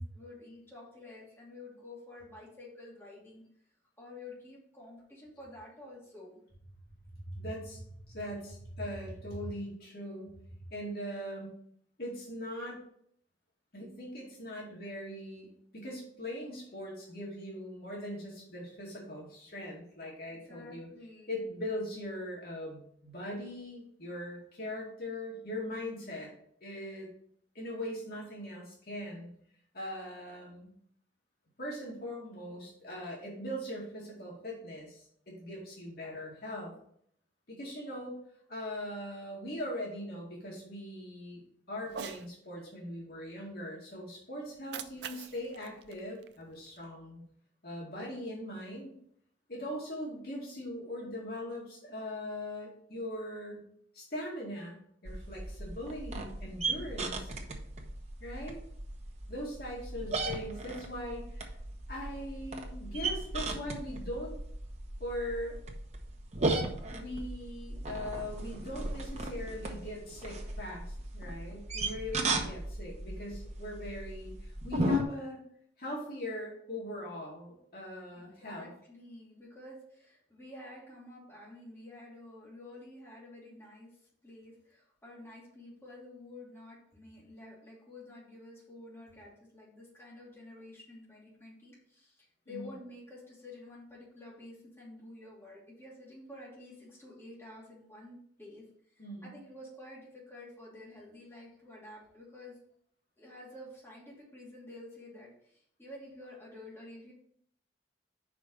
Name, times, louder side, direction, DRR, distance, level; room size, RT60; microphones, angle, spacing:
voice 1, 0.0-3.4 4.0-6.4 20.5-21.3 78.2-84.0 84.2-102.6 103.2-107.1, left 2 dB, 15° left, -6 dB, 2.7 m, -50 dB
voice 2, 7.1-10.4 10.7-11.5 12.0-12.8 13.7-15.5 15.7-20.9 21.3-26.3 26.6-27.1 27.5-29.3 29.7-30.7 31.6-36.7 37.5-38.2 38.5-41.4 41.7-47.2 47.6-48.9 49.5-53.6 53.9-57.3 58.2-58.6 59.3-61.5 61.9-64.3 65.0-65.6 66.9-75.4 75.8-78.7 92.5-92.7 99.0-99.3, left 1 dB, 60° left, -4 dB, 2.4 m, -40 dB
Cat, 41.8-42.3 44.5-46.8, right 7 dB, 65° right, 0.5 m, -45 dB
sound 1, 55.0-75.0, right 2 dB, 40° right, 1.0 m, -36 dB
5.4 x 5.1 x 6.4 m, 0.65 s
head